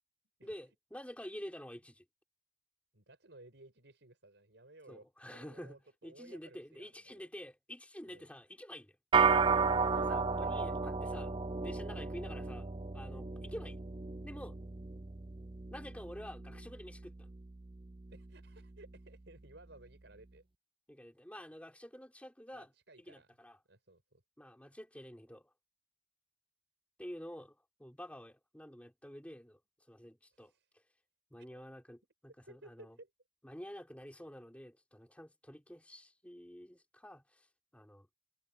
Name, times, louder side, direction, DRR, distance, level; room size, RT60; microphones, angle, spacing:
voice 1, 0.4-2.0 4.9-9.0 10.0-13.8 14.2-14.6 15.7-17.3 20.9-22.7 23.0-23.6 24.4-25.5 27.0-29.6 29.9-30.8 31.3-33.0 33.4-37.5 37.7-38.1, equal, 5° left, 4.9 m, -49 dB
voice 2, 2.9-7.3 8.0-8.3 9.8-10.1 10.4-10.7 18.1-20.5 22.5-23.4 23.7-24.2 30.3-30.7 31.5-31.7 32.5-33.1, right 2 dB, 75° right, 4.9 m, -58 dB
sound 1, 9.1-18.7, right 5 dB, 30° right, 0.6 m, -34 dB
head